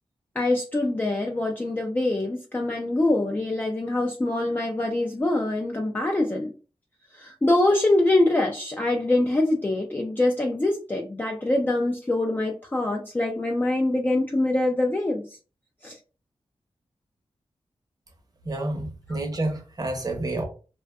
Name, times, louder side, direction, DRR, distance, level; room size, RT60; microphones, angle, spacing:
voice 1, 0.4-6.5 7.1-15.4 15.8-16.0, left 2 dB, 20° left, 1 dB, 0.4 m, -24 dB
voice 2, 18.4-20.5, right 2 dB, 40° right, 3 dB, 0.8 m, -29 dB
2.5 x 2.3 x 2.3 m, 0.35 s
wide cardioid pair, 80°, 11 cm